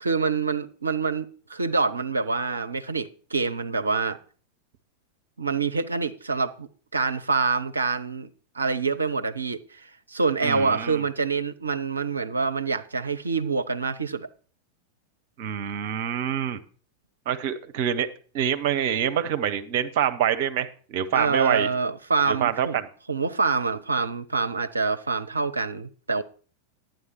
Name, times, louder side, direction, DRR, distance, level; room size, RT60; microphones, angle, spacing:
voice 1, 0.0-4.2 5.4-14.3 21.1-22.8 23.1-26.2, right 4 dB, 75° right, 0.5 m, -26 dB
voice 2, 10.4-11.0 15.4-16.6 17.3-18.1 18.3-21.7 22.3-22.9, right 9 dB, 50° right, 1.0 m, -26 dB
11.0 x 9.2 x 4.5 m
figure-of-eight pair, 90°, 0 cm